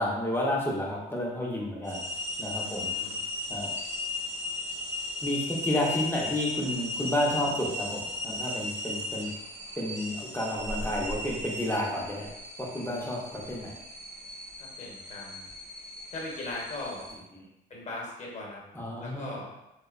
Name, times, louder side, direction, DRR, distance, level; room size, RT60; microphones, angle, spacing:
voice 1, 0.0-2.1 2.4-2.9 3.5-3.7 5.2-9.3 9.8-12.3 12.6-13.7 18.7-19.4, left 1 dB, 10° left, -4 dB, 0.6 m, -31 dB
sound 1, 1.8-17.2, left 2 dB, 40° right, 0.9 m, -36 dB
voice 2, 2.6-3.2 14.6-15.5 16.1-17.1 17.7-18.6 18.9-19.5, left 2 dB, 35° left, -3 dB, 0.9 m, -39 dB
2.6 x 2.1 x 2.4 m, 0.90 s
cardioid pair, 90°, 20 cm